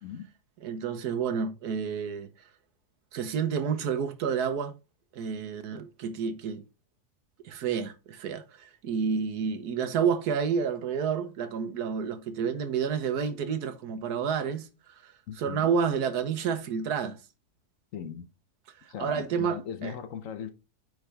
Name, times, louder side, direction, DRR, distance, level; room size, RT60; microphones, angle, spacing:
voice 1, 0.6-2.3 3.1-4.7 5.1-6.6 7.4-14.7 15.0-15.1 15.4-17.2 19.0-19.9, right 6 dB, 80° right, 1.4 m, -29 dB
voice 2, 15.3-15.7 17.9-18.3 18.9-20.5, left 8 dB, 60° left, 1.1 m, -38 dB
9.4 x 3.9 x 3.3 m
omnidirectional pair, 1.7 m